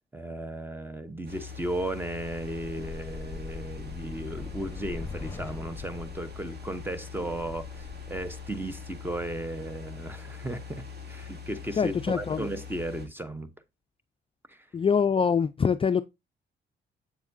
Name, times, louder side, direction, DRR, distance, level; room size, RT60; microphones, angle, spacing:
voice 1, 0.1-13.5 14.5-14.7, right 1 dB, 10° right, 1.0 m, -35 dB
sound 1, 1.2-13.1, left 6 dB, 55° right, 2.4 m, -42 dB
sound 2, 2.2-9.7, left 3 dB, 10° left, 1.5 m, -44 dB
voice 2, 11.8-12.4 14.7-16.0, left 6 dB, 25° left, 0.4 m, -24 dB
7.8 x 7.2 x 2.7 m
cardioid pair, 90°, 20 cm